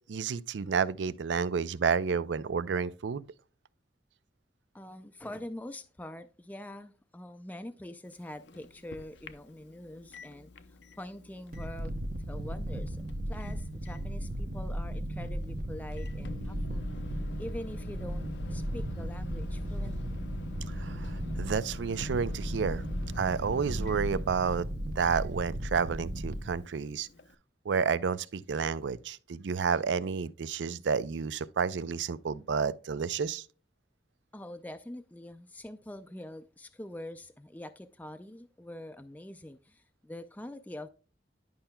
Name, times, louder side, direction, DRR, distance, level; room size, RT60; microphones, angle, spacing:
voice 1, 0.1-3.3 20.8-22.8 23.2-24.6 25.0-27.1 27.7-33.4, right 6 dB, 90° right, 0.4 m, -30 dB
voice 2, 4.7-11.9 12.2-16.8 17.4-20.2 34.3-40.9, left 1 dB, 10° left, 0.4 m, -44 dB
Microwave oven, 8.0-27.4, left 3 dB, 85° left, 0.6 m, -48 dB
sound 1, 11.5-26.6, right 1 dB, 55° right, 0.8 m, -36 dB
10.5 x 5.6 x 2.2 m
head